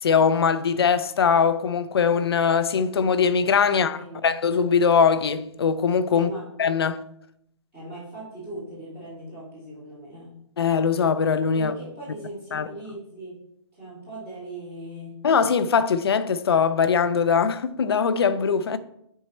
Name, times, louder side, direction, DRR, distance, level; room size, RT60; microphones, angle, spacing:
voice 1, 0.0-6.3 6.6-7.0 10.6-11.7 12.5-12.7 15.2-18.8, left 6 dB, 50° left, 0.6 m, -21 dB
voice 2, 3.7-4.3 6.1-6.4 7.7-10.3 11.5-13.4 13.7-15.2, right 1 dB, 15° right, 3.4 m, -39 dB
10.0 x 4.7 x 4.3 m
hypercardioid pair, 170°, 16 cm